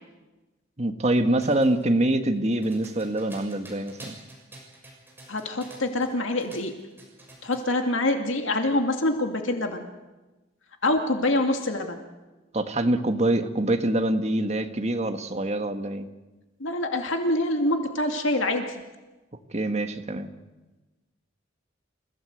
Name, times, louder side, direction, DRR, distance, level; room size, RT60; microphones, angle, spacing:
voice 1, 0.8-4.2 12.5-16.1 19.5-20.3, right 1 dB, 35° right, 6 dB, 1.7 m, -25 dB
sound 1, 1.4-6.1 6.4-7.7, right 1 dB, 10° right, 6.8 m, -46 dB
voice 2, 5.3-6.7 7.4-9.8 10.8-12.0 16.6-18.8, left 1 dB, 70° left, 4 dB, 2.3 m, -25 dB
28.5 x 17.0 x 8.1 m, 1.1 s
head